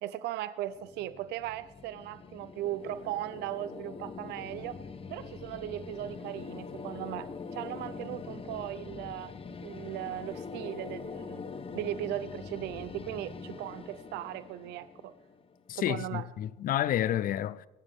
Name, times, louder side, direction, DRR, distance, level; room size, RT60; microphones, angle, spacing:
voice 1, 0.0-4.8 5.1-9.3 9.6-11.5 11.7-15.1 15.8-16.3, right 13 dB, 85° right, 0.6 m, -38 dB
sound 1, 0.7-15.7, left 5 dB, 35° left, 1.1 m, -44 dB
voice 2, 15.7-17.7, left 11 dB, 55° left, 0.6 m, -30 dB
23.0 x 12.0 x 3.6 m
cardioid pair, 110°, 17 cm